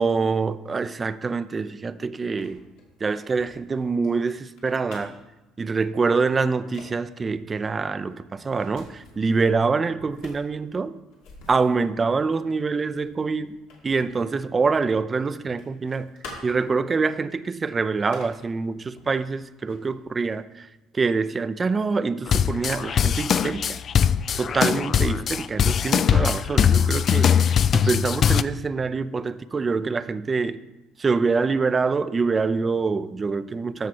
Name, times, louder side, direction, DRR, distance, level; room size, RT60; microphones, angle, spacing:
voice 1, 0.0-2.6 3.0-5.2 5.6-11.0 11.5-13.6 13.8-16.1 16.4-20.7 20.9-23.8 24.4-27.4 27.7-30.6 31.0-33.9, right 4 dB, 30° right, 0.5 m, -25 dB
sound 1, 2.2-5.3 6.0-6.2 6.5-6.9 7.3-9.5 10.0-14.9 15.1-16.8 17.3-17.4 17.9-18.5 19.0-20.0, left 3 dB, 85° left, 2.5 m, -48 dB
sound 2, 22.3-28.4, left 8 dB, 50° left, 0.3 m, -21 dB
13.5 x 5.0 x 4.4 m
supercardioid pair, 80°, 0 cm